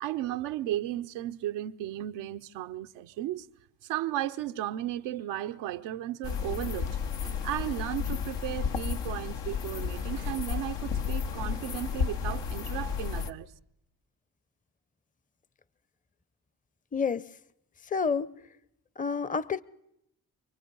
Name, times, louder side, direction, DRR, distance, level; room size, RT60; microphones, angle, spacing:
voice 1, 0.0-3.5 3.8-13.5, right 13 dB, 90° right, 0.7 m, -35 dB
sound 1, 6.2-13.3, left 6 dB, 80° left, 1.3 m, -32 dB
voice 2, 16.9-17.3 17.9-18.3 19.0-19.6, left 5 dB, 20° left, 0.7 m, -28 dB
27.0 x 20.0 x 5.4 m
supercardioid pair, 50°, 42 cm